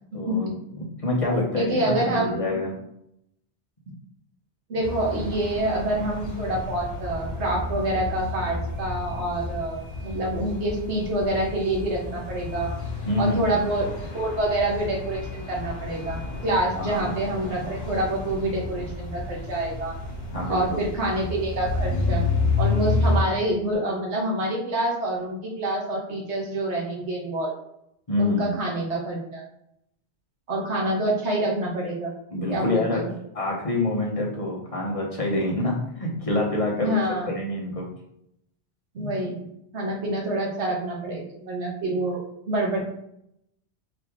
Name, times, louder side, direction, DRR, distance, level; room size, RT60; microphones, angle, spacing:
voice 1, 0.1-0.5 0.7-2.7 13.1-13.6 16.7-17.1 20.3-20.8 28.1-28.6 32.3-33.0 33.3-37.0 37.3-37.9, left 1 dB, 35° left, -3 dB, 0.9 m, -26 dB
voice 2, 1.5-2.5 4.7-12.7 13.2-19.9 20.5-22.3 22.6-27.5 28.2-29.4 30.5-32.1 32.5-33.1 36.8-37.3 38.9-39.4 39.7-42.8, right 1 dB, 85° right, -1 dB, 1.4 m, -27 dB
sound 1, 4.8-23.2, left 3 dB, 65° left, 1.4 m, -30 dB
4.1 x 3.0 x 3.5 m, 0.77 s
omnidirectional pair, 1.1 m